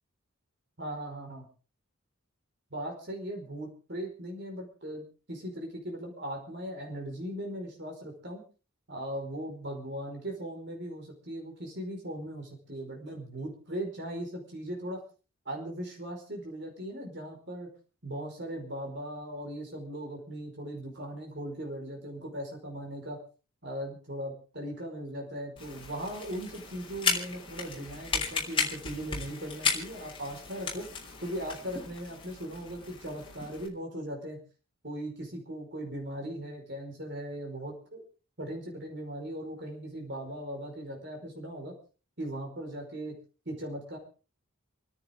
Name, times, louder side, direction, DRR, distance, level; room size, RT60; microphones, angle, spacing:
voice 1, 0.8-1.5 2.7-8.4 8.9-15.0 15.4-17.7 18.0-23.2 23.6-30.9 31.2-34.4 34.8-38.0 38.4-41.7 42.2-43.1 43.4-44.0, right 1 dB, 50° right, 0 dB, 4.9 m, -38 dB
sound 1, 25.6-33.7, left 5 dB, 25° left, 3.4 m, -35 dB
30.0 x 10.0 x 3.7 m, 0.35 s
head